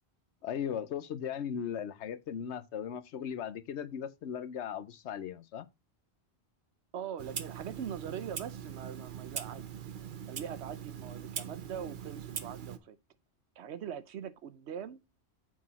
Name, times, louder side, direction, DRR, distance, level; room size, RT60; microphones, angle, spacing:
voice 1, 0.4-5.7, left 8 dB, 85° left, 1.0 m, -37 dB
voice 2, 6.9-9.7 10.3-13.0 13.6-15.0, right 8 dB, 80° right, 1.0 m, -42 dB
Clock, 7.2-12.8, right 8 dB, 50° right, 0.9 m, -42 dB
7.5 x 5.0 x 4.0 m
omnidirectional pair, 1.1 m